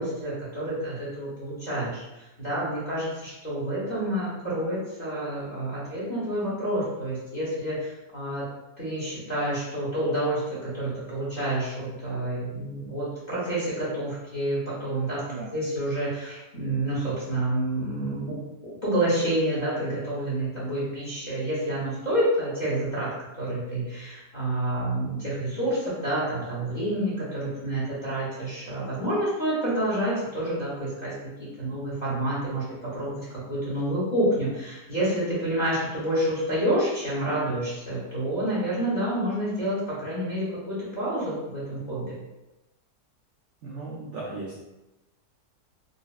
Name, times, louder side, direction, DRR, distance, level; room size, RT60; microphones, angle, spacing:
voice 1, 0.0-8.4 8.8-15.2 15.5-18.4 18.8-31.1 31.4-42.1, right 1 dB, 35° left, -8 dB, 0.8 m, -28 dB
voice 2, 43.6-44.6, right 3 dB, 75° right, -5 dB, 0.6 m, -36 dB
3.9 x 2.0 x 2.3 m, 0.99 s
omnidirectional pair, 1.8 m